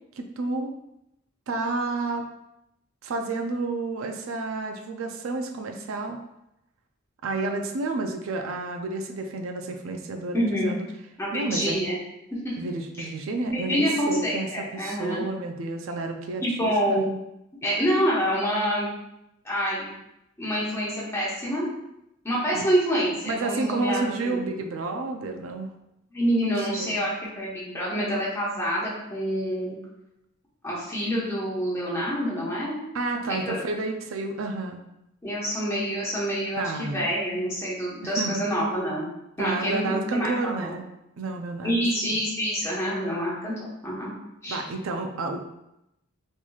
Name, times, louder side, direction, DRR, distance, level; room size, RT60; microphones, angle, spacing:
voice 1, 0.1-0.7 1.5-2.2 3.0-6.2 7.2-10.9 11.3-11.8 12.6-17.1 22.5-22.7 23.3-25.7 26.4-27.0 32.9-34.8 36.6-37.0 38.0-38.4 39.4-40.9 41.2-41.8 42.1-42.2 44.5-45.4, right 3 dB, 80° right, 4 dB, 0.4 m, -30 dB
voice 2, 10.3-10.7 11.2-12.0 13.0-13.1 13.5-15.3 16.4-17.1 17.6-18.9 19.4-19.9 20.4-21.7 22.2-24.4 26.1-27.1 27.4-29.7 30.6-32.8 33.3-33.6 35.2-39.1 39.4-40.7 41.6-43.5 43.8-44.1 44.4-44.6, equal, 15° left, -7 dB, 1.1 m, -27 dB
4.4 x 2.9 x 2.3 m, 0.86 s
head